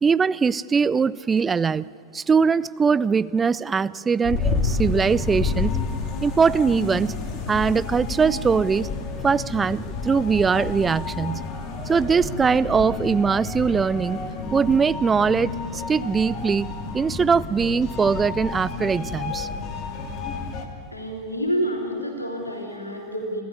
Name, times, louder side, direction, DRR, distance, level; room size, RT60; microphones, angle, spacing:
voice 1, 0.0-1.9 2.1-5.7 6.2-7.1 7.5-8.9 9.2-11.4 11.9-14.2 14.5-19.5, right 5 dB, 15° right, 18 dB, 0.5 m, -21 dB
sound 1, 4.2-20.7, left 4 dB, 35° left, 2.6 m, -30 dB
voice 2, 20.6-23.4, equal, 85° left, 0 dB, 3.4 m, -29 dB
27.5 x 14.5 x 9.6 m, 2.4 s
figure-of-eight pair, 90°, 0 cm